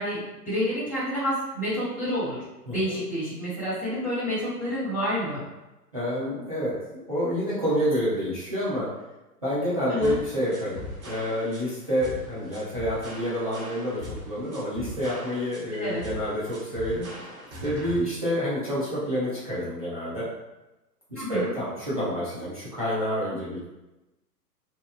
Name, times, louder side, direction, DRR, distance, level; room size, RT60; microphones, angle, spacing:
voice 1, 0.0-2.4 2.7-5.4 9.9-10.1 15.7-16.0 21.1-21.5, equal, 5° left, -18 dB, 0.7 m, -29 dB
voice 2, 5.9-8.9 9.4-17.1 17.6-20.3 21.1-23.6, equal, 25° right, -10 dB, 0.3 m, -28 dB
sound 1, 10.0-18.0, left 1 dB, 45° right, 0.9 m, -40 dB
2.8 x 2.2 x 2.3 m, 1.0 s
figure-of-eight pair, 125°, 49 cm